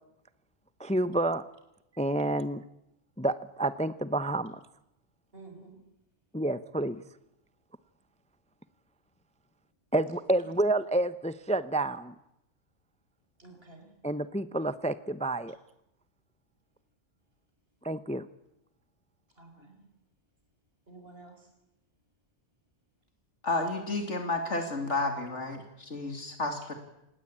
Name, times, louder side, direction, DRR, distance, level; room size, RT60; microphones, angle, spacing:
voice 1, 0.8-1.4 2.0-2.6 3.2-4.6 6.3-7.0 9.9-12.1 14.0-15.6 17.8-18.2, right 1 dB, 5° left, 14 dB, 0.6 m, -29 dB
voice 2, 5.3-5.8 10.4-10.5 13.4-13.9 19.4-19.9 20.9-21.5, right 3 dB, 50° right, 4 dB, 5.3 m, -51 dB
voice 3, 23.4-26.7, left 2 dB, 70° left, 5 dB, 3.0 m, -31 dB
26.5 x 19.5 x 8.7 m, 0.87 s
omnidirectional pair, 1.3 m